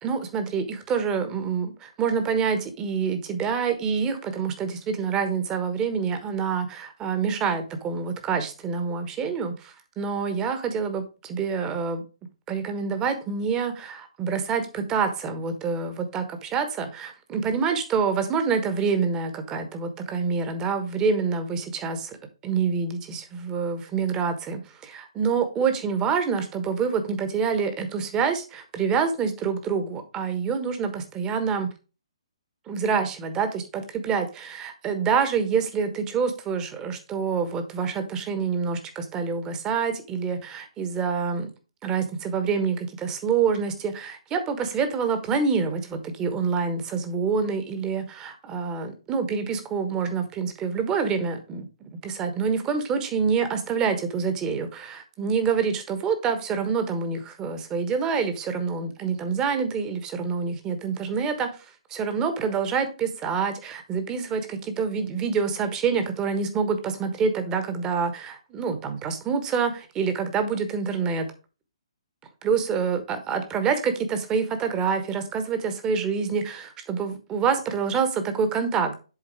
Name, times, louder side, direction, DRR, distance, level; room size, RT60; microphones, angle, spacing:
voice 1, 0.0-12.0 12.5-22.0 22.4-31.7 32.7-41.5 41.8-51.6 52.0-61.5 61.9-71.3 72.4-73.0 73.3-78.9, right 5 dB, 20° right, 8 dB, 1.2 m, -26 dB
7.6 x 4.1 x 4.6 m, 0.32 s
figure-of-eight pair, 130°, 3 cm